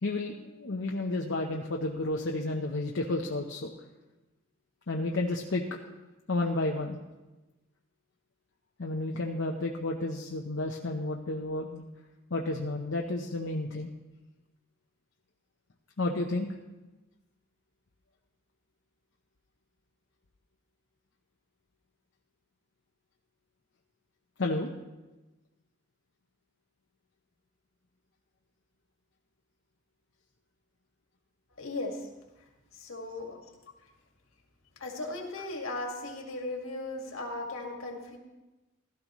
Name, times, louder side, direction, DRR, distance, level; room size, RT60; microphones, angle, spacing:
voice 1, 0.0-3.7 4.9-5.6 6.3-7.0 8.8-11.9 12.3-13.9 16.0-16.6 24.4-24.7, left 2 dB, 65° left, 1 dB, 0.8 m, -31 dB
voice 2, 31.6-32.1 32.7-33.4 34.8-38.2, left 2 dB, 80° left, 1 dB, 2.0 m, -37 dB
16.5 x 12.5 x 3.1 m, 1.1 s
head